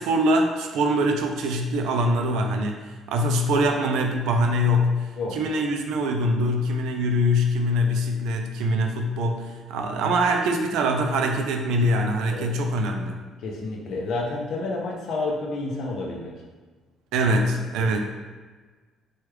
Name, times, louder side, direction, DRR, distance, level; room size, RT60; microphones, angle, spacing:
voice 1, 0.0-13.2 17.1-18.0, equal, 80° right, 4 dB, 0.4 m, -23 dB
voice 2, 5.2-5.6 12.3-12.5 13.4-16.3 17.8-17.9, left 2 dB, 50° left, -1 dB, 0.5 m, -30 dB
3.1 x 2.3 x 3.1 m, 1.4 s
cardioid pair, 175°, 0 cm